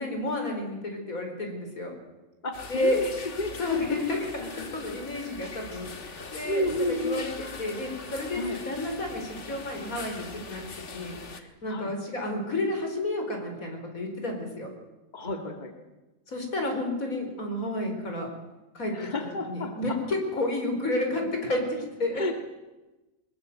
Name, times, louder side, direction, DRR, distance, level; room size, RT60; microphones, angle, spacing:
voice 1, 0.0-1.9 2.7-3.0 3.6-4.5 4.7-10.6 10.9-14.7 16.3-18.3 18.7-18.9 19.4-22.2, left 2 dB, 85° left, 3 dB, 5.1 m, -31 dB
voice 2, 2.4-3.1 3.4-4.0 4.4-4.7 6.4-7.2 8.4-8.6 11.7-11.9 15.1-15.7 18.9-20.0 22.1-22.3, left 1 dB, 35° left, 5 dB, 2.2 m, -31 dB
sound 1, 2.5-11.4, left 4 dB, 60° left, 2.0 m, -42 dB
22.5 x 21.5 x 7.9 m, 1.1 s
omnidirectional pair, 1.4 m